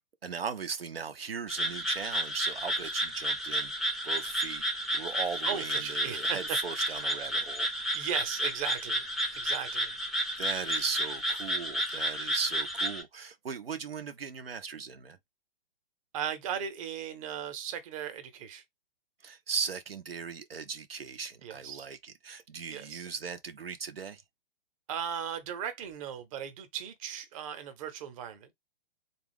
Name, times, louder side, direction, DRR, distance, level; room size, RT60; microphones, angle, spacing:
voice 1, 0.2-3.7 4.0-7.7 10.4-15.2 19.2-24.2, right 6 dB, 80° right, 0.6 m, -38 dB
sound 1, 1.5-13.0, right 1 dB, ahead, 0.5 m, -32 dB
voice 2, 5.4-7.0 7.9-9.9 16.1-18.6 21.4-21.9 22.7-23.1 24.9-28.5, right 9 dB, 35° right, 0.8 m, -37 dB
3.6 x 2.4 x 3.4 m
figure-of-eight pair, 115°, 29 cm